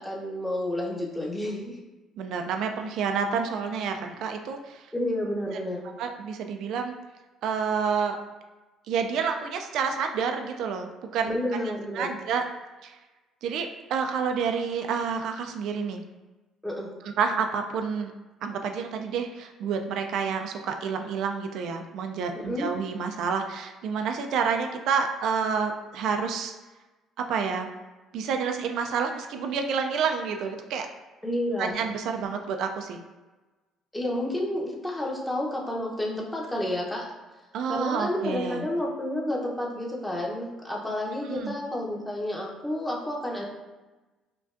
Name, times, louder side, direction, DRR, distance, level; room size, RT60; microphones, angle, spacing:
voice 1, 0.0-1.8 4.9-5.9 11.3-12.2 16.6-16.9 22.4-22.7 31.2-31.8 33.9-37.1 37.7-43.4, left 1 dB, 5° left, -2 dB, 0.8 m, -30 dB
voice 2, 2.2-4.9 6.0-6.9 7.4-8.2 8.9-11.3 11.6-12.4 12.8-13.0 13.4-16.0 17.2-18.1 18.4-26.5 27.3-27.7 28.1-30.9 31.6-33.0 37.5-38.6 41.2-41.5, right 6 dB, 70° right, 5 dB, 0.3 m, -29 dB
4.9 x 2.2 x 2.5 m, 1.2 s
cardioid pair, 105°, 0 cm